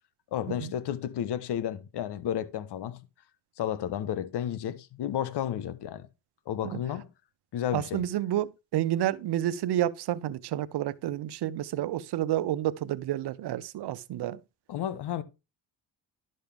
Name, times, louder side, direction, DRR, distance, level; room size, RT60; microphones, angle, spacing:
voice 1, 0.3-3.0 3.6-6.1 6.5-7.1 7.5-8.0 14.7-15.2, left 10 dB, 70° left, 1.4 m, -32 dB
voice 2, 7.7-14.4, right 12 dB, 65° right, 0.8 m, -30 dB
11.5 x 6.6 x 3.5 m
supercardioid pair, 75°, 42 cm